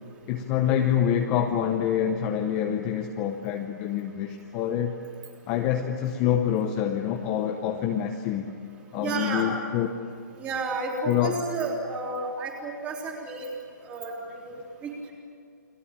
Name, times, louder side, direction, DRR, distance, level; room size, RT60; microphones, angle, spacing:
voice 1, 0.3-5.0 5.5-8.5 8.9-10.0 11.1-11.4, left 9 dB, 15° left, 4 dB, 0.8 m, -26 dB
voice 2, 9.0-9.5 10.4-13.5 13.8-14.1 14.4-15.1, right 3 dB, 10° right, 0 dB, 3.4 m, -31 dB
30.0 x 22.5 x 8.9 m, 2.3 s
hypercardioid pair, 175°, 10 cm